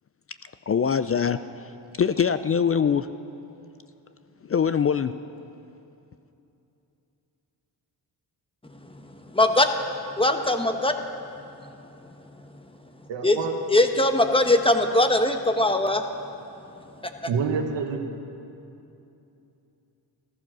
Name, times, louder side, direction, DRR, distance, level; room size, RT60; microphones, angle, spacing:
voice 1, 0.7-3.1 4.4-5.1, left 7 dB, 35° left, 12 dB, 0.4 m, -23 dB
voice 2, 9.3-9.7 10.2-10.9 13.2-13.4 13.7-16.0, left 1 dB, 10° left, 6 dB, 1.1 m, -20 dB
voice 3, 13.1-13.5 17.3-18.0, right 5 dB, 80° right, 4 dB, 1.5 m, -27 dB
14.0 x 14.0 x 6.2 m, 2.8 s
cardioid pair, 80°, 43 cm